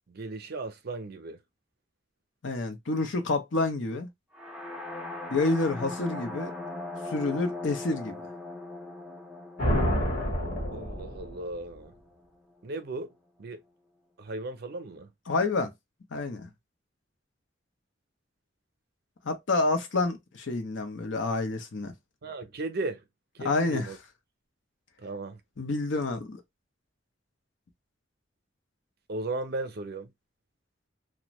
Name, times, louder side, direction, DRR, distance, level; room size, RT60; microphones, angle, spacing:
voice 1, 0.1-1.4 10.7-11.9 12.6-13.1 13.4-13.6 14.2-15.1 22.2-23.0 23.4-24.0 25.0-25.4 29.1-30.1, right 2 dB, 55° right, 0.5 m, -36 dB
voice 2, 2.4-4.1 5.3-6.5 7.1-8.2 15.3-15.7 16.1-16.5 19.2-21.9 23.4-23.9 25.6-26.4, left 3 dB, 75° left, 0.7 m, -28 dB
sound 1, 4.3-12.2, left 2 dB, 5° right, 0.5 m, -40 dB
sound 2, 9.6-11.6, equal, 45° left, 1.1 m, -28 dB
2.5 x 2.1 x 2.9 m
head